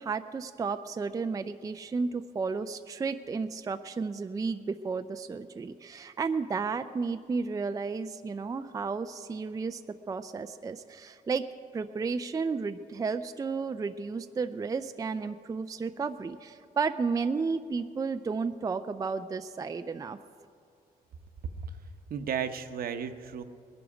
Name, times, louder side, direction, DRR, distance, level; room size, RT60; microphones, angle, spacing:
voice 1, 0.0-11.5 11.7-20.2, right 4 dB, 20° right, 9 dB, 0.4 m, -33 dB
voice 2, 21.4-21.8 22.1-23.4, right 7 dB, 65° right, 8 dB, 0.9 m, -34 dB
20.0 x 11.0 x 4.9 m, 2.4 s
cardioid pair, 130°, 16 cm